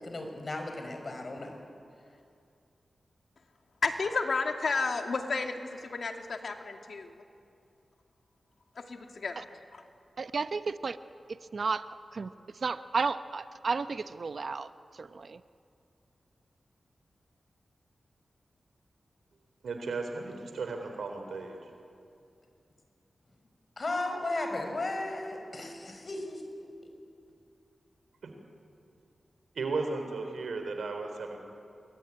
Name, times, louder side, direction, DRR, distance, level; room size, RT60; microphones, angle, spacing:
voice 1, 0.0-1.6 23.8-26.9, left 2 dB, 50° left, 5 dB, 5.5 m, -35 dB
voice 2, 3.8-7.2 8.8-9.5 9.7-9.8, left 4 dB, 70° left, 4 dB, 2.5 m, -32 dB
voice 3, 10.2-11.0 11.3-15.4, right 4 dB, 65° right, 12 dB, 0.8 m, -33 dB
voice 4, 19.6-21.6 28.2-28.3 29.6-31.4, right 3 dB, 90° right, 5 dB, 3.6 m, -35 dB
27.5 x 22.0 x 9.5 m, 2.5 s
cardioid pair, 65°, 0 cm